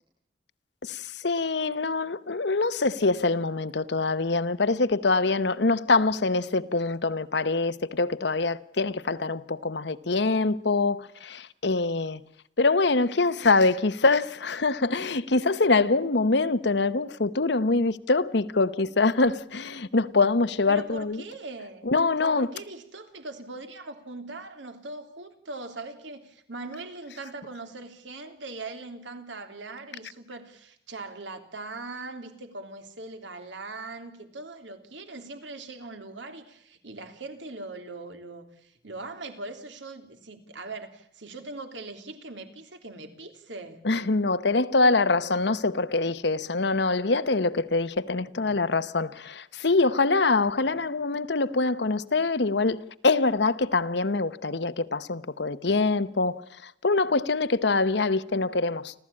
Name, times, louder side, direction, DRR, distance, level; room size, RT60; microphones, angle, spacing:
voice 1, 0.8-12.2 12.6-21.2 21.8-22.5 43.8-58.9, left 3 dB, 65° left, 1.0 m, -24 dB
voice 2, 20.7-21.9 22.3-43.8, right 2 dB, 80° right, 3.3 m, -40 dB
29.5 x 13.5 x 8.7 m
head